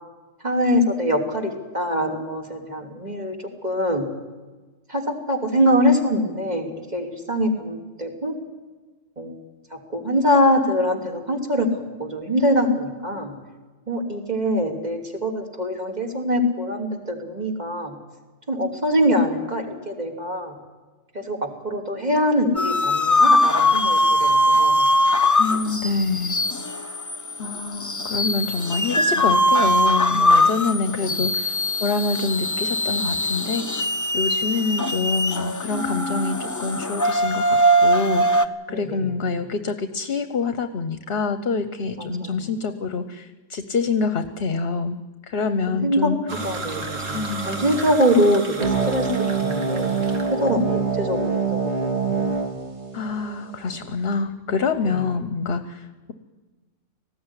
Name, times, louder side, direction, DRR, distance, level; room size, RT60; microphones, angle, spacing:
voice 1, 0.4-3.4 3.6-4.1 4.9-8.4 9.2-9.3 9.7-11.7 12.0-13.3 13.9-18.0 18.5-20.6 21.1-24.9 31.0-31.2 38.7-39.2 42.0-42.4 45.7-46.1 46.4-49.1 49.3-52.3 54.8-55.1, equal, 35° right, 1 dB, 3.1 m, -23 dB
sound 1, 22.6-38.5, left 1 dB, 20° left, 0.5 m, -21 dB
voice 2, 25.4-26.4 27.4-33.9 34.1-45.0 45.3-46.2 47.1-47.5 52.9-56.1, left 4 dB, 55° left, 10 dB, 1.1 m, -26 dB
sound 2, 46.3-50.5, right 3 dB, 80° right, 2.6 m, -33 dB
sound 3, 48.6-53.6, right 4 dB, 60° right, 3.4 m, -25 dB
19.0 x 15.5 x 9.8 m, 1.3 s
omnidirectional pair, 1.3 m